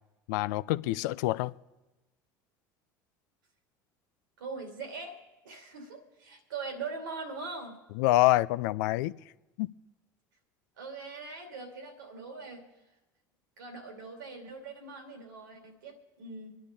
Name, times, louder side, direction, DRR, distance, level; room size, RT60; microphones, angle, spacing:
voice 1, 0.3-1.5 8.0-9.1 9.6-9.7, left 17 dB, 70° left, 0.4 m, -26 dB
voice 2, 4.4-5.2 5.4-7.8 10.8-12.7 13.6-16.6, right 4 dB, 85° right, 2.5 m, -41 dB
24.5 x 10.0 x 3.7 m
hypercardioid pair, 75°, 10 cm